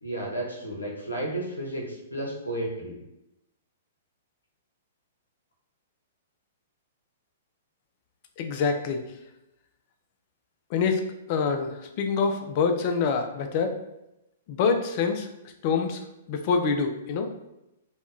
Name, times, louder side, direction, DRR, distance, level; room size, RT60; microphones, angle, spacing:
voice 1, 0.0-3.0, right 1 dB, 85° left, -1 dB, 0.8 m, -32 dB
voice 2, 8.4-9.0 10.7-11.0 11.3-13.8 14.5-15.3 15.6-16.0 16.3-17.3, left 5 dB, 45° left, 6 dB, 0.4 m, -25 dB
3.4 x 2.2 x 2.6 m, 0.89 s
figure-of-eight pair, 110°, 0 cm